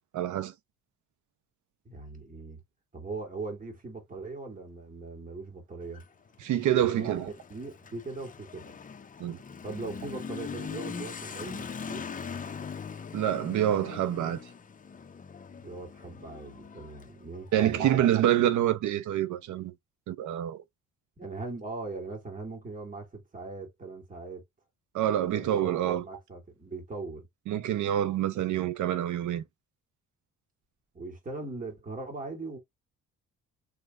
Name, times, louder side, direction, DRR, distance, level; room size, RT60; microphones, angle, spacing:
voice 1, 0.1-0.5 6.4-7.3 9.2-9.4 13.1-14.4 17.5-19.7 20.1-20.6 24.9-26.0 27.5-29.4, right 11 dB, 75° right, 0.8 m, -26 dB
voice 2, 1.8-2.6 2.9-6.0 6.8-8.7 9.6-12.1 15.6-17.9 18.3-18.4 21.2-24.4 25.2-27.3 28.3-28.7 30.9-32.6, right 3 dB, 25° right, 2.4 m, -40 dB
Motorcycle / Accelerating revving vroom, 5.8-18.1, left 6 dB, 25° left, 0.6 m, -42 dB
4.8 x 3.3 x 2.4 m
cardioid pair, 90°, 30 cm